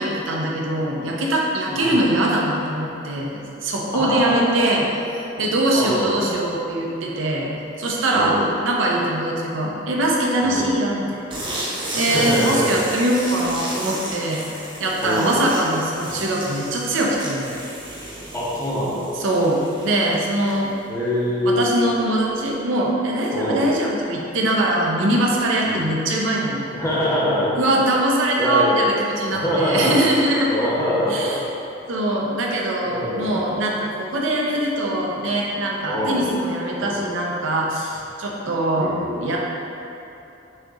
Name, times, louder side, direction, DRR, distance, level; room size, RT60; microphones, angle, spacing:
voice 1, 0.0-4.9 5.4-7.5 7.8-8.4 8.6-11.2 11.9-14.4 14.8-17.6 19.2-20.7 21.4-26.7 27.5-30.5 31.1-31.4 31.9-39.4, right 1 dB, 85° right, -2 dB, 0.6 m, -22 dB
voice 2, 1.7-2.0 3.9-4.6 5.7-6.3 8.1-8.5 10.4-10.7 12.1-12.8 15.0-15.4 18.3-19.1 20.9-21.7 23.3-23.7 25.6-25.8 26.7-27.5 28.4-28.8 29.3-30.0 30.5-31.3 32.8-33.6 35.9-36.3 36.8-37.0 38.8-39.3, equal, 15° left, -8 dB, 0.7 m, -24 dB
sound 1, 11.3-20.8, right 1 dB, 25° right, 0.6 m, -33 dB
6.4 x 2.9 x 2.4 m, 2.9 s
head